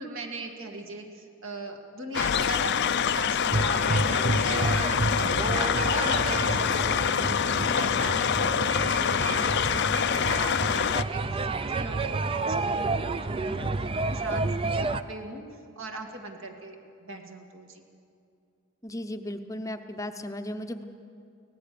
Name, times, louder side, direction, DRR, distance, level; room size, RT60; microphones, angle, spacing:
voice 1, 0.0-15.4 15.8-17.8, right 2 dB, 65° right, 3 dB, 2.1 m, -39 dB
sound 1, 2.1-11.0, left 8 dB, 55° left, 0.4 m, -26 dB
sound 2, 3.5-15.0, right 3 dB, 25° right, 0.4 m, -30 dB
voice 2, 18.8-20.8, left 1 dB, 15° left, 7 dB, 0.7 m, -36 dB
23.5 x 18.0 x 6.8 m, 2.5 s
head